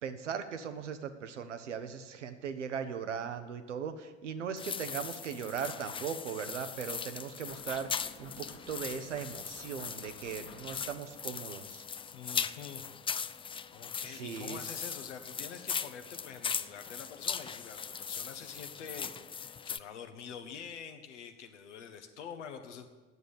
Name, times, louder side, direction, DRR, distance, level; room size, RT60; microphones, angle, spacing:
voice 1, 0.0-11.8 14.0-14.7, right 7 dB, 85° right, 9 dB, 0.7 m, -39 dB
sound 1, 4.6-19.8, left 6 dB, 15° left, 0.3 m, -39 dB
sound 2, 7.5-11.3, left 4 dB, 40° left, 1.4 m, -54 dB
voice 2, 12.1-12.9 13.7-22.9, left 7 dB, 80° left, 6 dB, 0.9 m, -46 dB
9.4 x 7.6 x 8.5 m, 1.3 s
figure-of-eight pair, 50°, 35 cm